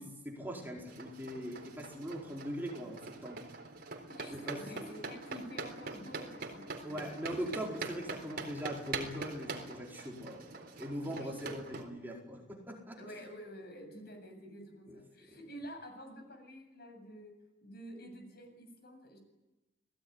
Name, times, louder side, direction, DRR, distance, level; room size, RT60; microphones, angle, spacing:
voice 1, 0.0-3.4 4.3-4.9 6.8-13.0 14.9-15.0, equal, 10° right, -1 dB, 4.6 m, -41 dB
sound 1, 0.9-11.8, right 3 dB, 55° right, 4.0 m, -44 dB
voice 2, 4.1-7.2 11.0-11.6 13.0-17.3 17.6-19.2, equal, 55° left, 5 dB, 7.9 m, -49 dB
30.0 x 19.0 x 9.7 m, 1.0 s
head